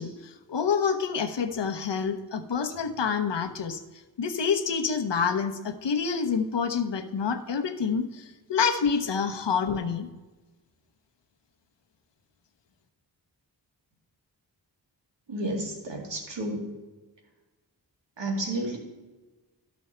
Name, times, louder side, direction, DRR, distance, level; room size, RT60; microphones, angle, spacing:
voice 1, 0.0-3.8 4.2-10.1, left 6 dB, 75° left, 7 dB, 0.9 m, -27 dB
voice 2, 15.3-16.7 18.2-18.8, right 1 dB, 80° right, 1 dB, 2.3 m, -31 dB
12.5 x 6.3 x 4.4 m, 1.2 s
wide cardioid pair, 95°, 43 cm